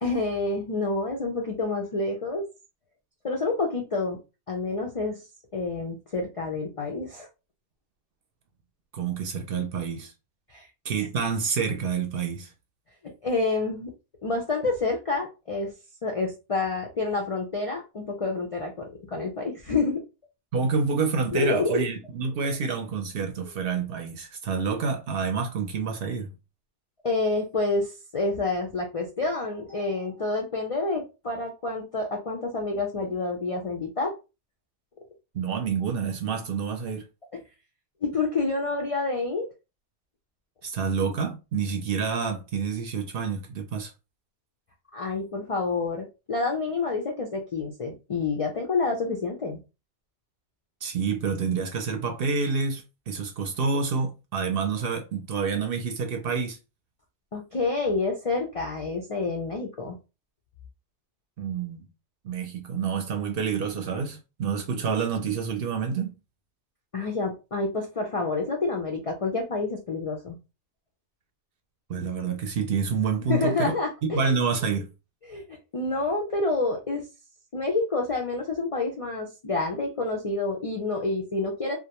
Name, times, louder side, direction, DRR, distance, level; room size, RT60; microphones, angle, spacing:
voice 1, 0.0-2.4 3.2-4.2 4.5-5.2 5.5-7.3 10.5-10.7 13.2-13.9 14.2-15.7 16.0-20.0 21.3-21.8 27.0-34.1 38.0-39.5 44.9-49.6 57.3-60.0 66.9-70.4 73.3-74.3 75.3-77.0 77.5-81.8, left 3 dB, 55° left, 0.4 m, -28 dB
voice 2, 8.9-10.1 10.8-12.5 20.5-26.3 35.3-37.1 40.6-43.9 50.8-56.6 61.4-61.9 62.2-66.1 71.9-73.8 74.1-74.9, right 5 dB, 60° right, 0.7 m, -28 dB
2.4 x 2.2 x 2.8 m
omnidirectional pair, 1.2 m